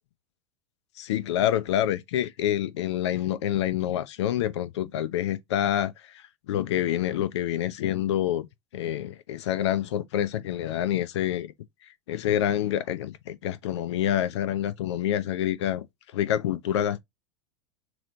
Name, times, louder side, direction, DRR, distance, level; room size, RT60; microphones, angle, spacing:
voice 1, 1.0-8.5 8.7-11.5 12.1-15.8 16.1-17.0, left 11 dB, 60° left, 0.5 m, -27 dB
3.9 x 3.0 x 2.6 m
figure-of-eight pair, 80°, 16 cm